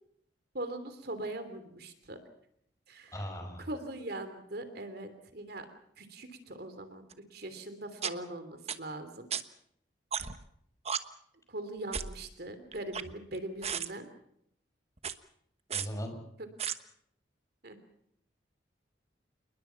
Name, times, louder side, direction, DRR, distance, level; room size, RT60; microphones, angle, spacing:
voice 1, 0.5-2.2 2.9-3.1 3.6-5.7 6.0-7.0 7.3-9.3 11.5-14.1 17.6-17.8, right 1 dB, 60° right, 10 dB, 3.1 m, -41 dB
voice 2, 3.1-3.6 15.7-16.2, equal, 20° left, 5 dB, 6.3 m, -38 dB
sound 1, 7.1-7.2 8.0-8.1 8.7-8.8 9.3-9.4 10.1-10.4 10.9-11.0 11.9-12.2 12.7-13.4 13.6-13.9 15.0-15.1 15.7-15.9 16.6-16.7, right 7 dB, 35° right, 1.2 m, -34 dB
29.0 x 21.0 x 5.8 m, 0.71 s
head